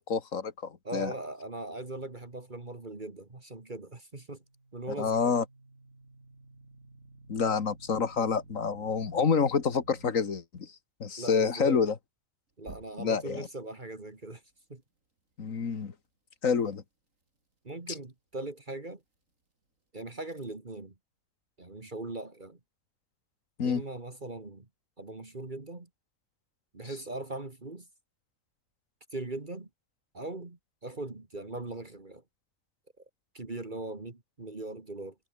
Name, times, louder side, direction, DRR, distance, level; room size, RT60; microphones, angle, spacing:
voice 1, 0.0-1.1 5.0-5.4 7.3-10.7 11.0-12.0 13.0-13.5 15.4-15.9 16.4-16.8 23.6-23.8, left 6 dB, 85° left, 2.1 m, -28 dB
voice 2, 0.8-4.4 4.7-5.4 11.2-11.9 12.6-14.4 14.7-14.8 17.6-19.0 19.9-20.9 21.6-22.6 23.6-24.7 25.0-25.9 26.7-27.9 29.1-29.7 30.1-32.2 33.0-33.1 33.3-35.2, right 2 dB, 35° right, 2.4 m, -40 dB
sound 1, 4.3-10.1 12.6-13.4, right 2 dB, 80° right, 5.0 m, -53 dB
omnidirectional pair, 1.3 m